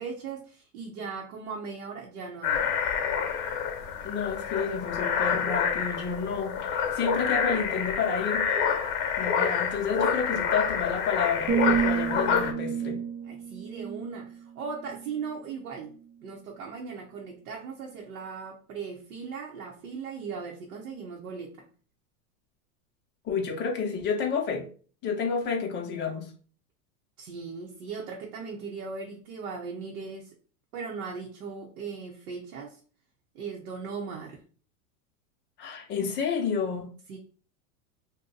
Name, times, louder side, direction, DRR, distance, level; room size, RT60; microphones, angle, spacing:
voice 1, 0.0-2.8 10.0-10.1 13.2-15.9 16.2-21.7 27.2-30.3 30.7-32.8 33.3-34.4 37.1-37.2, right 5 dB, 80° right, 0.9 m, -38 dB
sound 1, 2.4-12.5, left 7 dB, 55° left, 0.9 m, -28 dB
voice 2, 4.0-8.5 9.2-13.0 23.2-24.6 25.0-26.3 35.6-36.9, left 5 dB, 25° left, 0.6 m, -30 dB
sound 2, 11.5-15.4 15.9-16.2, right 7 dB, 50° right, 0.7 m, -31 dB
2.7 x 2.2 x 3.7 m
supercardioid pair, 135°, 44 cm